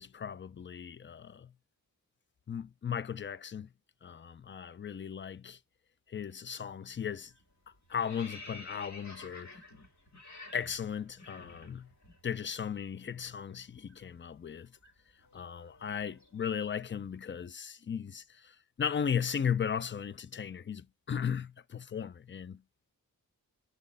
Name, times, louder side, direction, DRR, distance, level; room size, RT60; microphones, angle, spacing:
voice 1, 0.0-1.5 2.5-3.7 4.0-5.6 6.1-7.3 7.9-9.5 10.5-11.9 12.2-14.7 15.3-22.6, left 7 dB, 35° left, 0.4 m, -36 dB
sound 1, 6.7-7.0 7.3-12.2 12.5-12.7 13.0-17.0, left 2 dB, 50° left, 2.3 m, -51 dB
6.2 x 4.0 x 5.3 m
wide cardioid pair, 75°, 36 cm